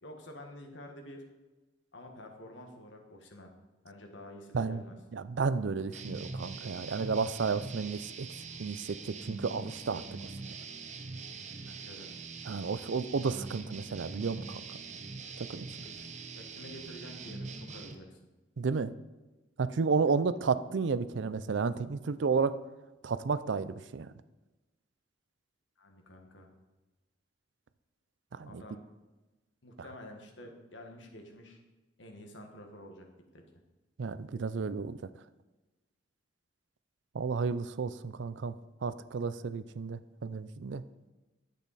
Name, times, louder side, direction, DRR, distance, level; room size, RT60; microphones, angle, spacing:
voice 1, 0.0-1.3 1.9-3.5 3.8-5.0 11.7-12.1 15.8-16.1 16.3-18.2 20.1-20.2 25.8-26.5 28.5-28.8 29.6-31.6 32.0-33.1 33.3-33.4, left 1 dB, 90° left, 3 dB, 1.6 m, -49 dB
voice 2, 5.1-8.3 8.6-10.2 12.5-14.6 15.4-15.7 18.6-18.9 19.6-22.6 23.0-24.1 28.4-28.6 34.0-35.0 37.1-38.5 38.8-40.8, right 5 dB, 75° right, 14 dB, 0.5 m, -32 dB
sound 1, 5.9-18.0, right 4 dB, 40° right, 0.8 m, -43 dB
10.0 x 8.3 x 4.2 m, 1.1 s
head